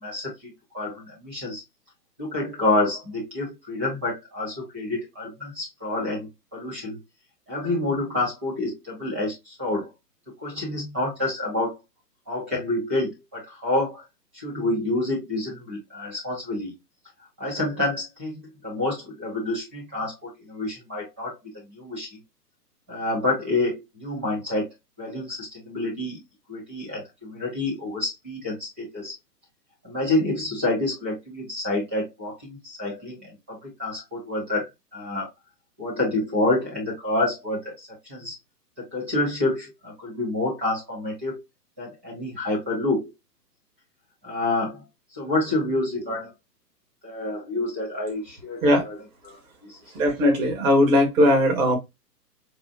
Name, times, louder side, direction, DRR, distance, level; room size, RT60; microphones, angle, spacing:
voice 1, 0.0-1.6 2.2-7.0 7.5-9.9 10.4-11.8 12.3-14.0 14.3-16.7 17.4-21.4 21.7-22.2 22.9-24.7 25.0-26.2 26.5-29.1 29.8-35.3 35.8-38.3 38.9-41.4 41.8-43.0 44.2-44.8 45.1-46.3 47.0-48.9 49.2-49.8, left 2 dB, 10° right, 0.4 m, -28 dB
voice 2, 49.9-51.8, equal, 55° right, 2.1 m, -19 dB
4.8 x 2.4 x 2.4 m
hypercardioid pair, 145°, 49 cm